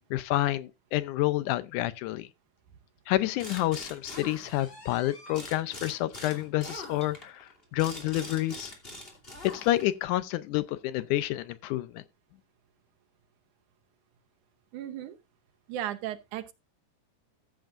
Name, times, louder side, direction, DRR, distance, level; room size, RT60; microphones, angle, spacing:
voice 1, 0.1-2.3 3.1-8.7 9.4-12.0, left 15 dB, 80° left, 2.1 m, -29 dB
sound 1, 3.4-5.0 5.3-10.0, left 1 dB, 20° left, 2.5 m, -43 dB
sound 2, 4.0-5.7 6.2-6.3 6.7-6.8 7.2-7.3 8.2-8.3, left 1 dB, 45° left, 4.5 m, -52 dB
voice 2, 14.7-15.2 15.7-16.5, right 12 dB, 75° right, 2.3 m, -35 dB
14.5 x 7.7 x 2.5 m
omnidirectional pair, 3.6 m